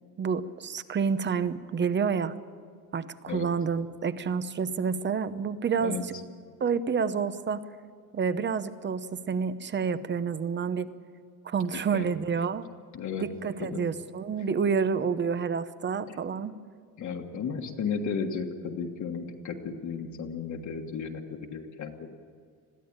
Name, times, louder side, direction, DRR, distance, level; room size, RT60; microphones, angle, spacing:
voice 1, 0.2-2.3 2.9-6.0 6.6-7.6 8.1-10.9 11.4-12.6 13.2-16.6, right 6 dB, 30° right, 13 dB, 0.8 m, -29 dB
voice 2, 5.8-6.2 11.9-12.1 12.9-13.3 13.6-13.8 14.4-14.5 16.1-16.2 17.0-22.2, left 6 dB, 55° left, 2 dB, 1.5 m, -34 dB
21.5 x 15.5 x 8.9 m, 2.1 s
cardioid pair, 160°, 35 cm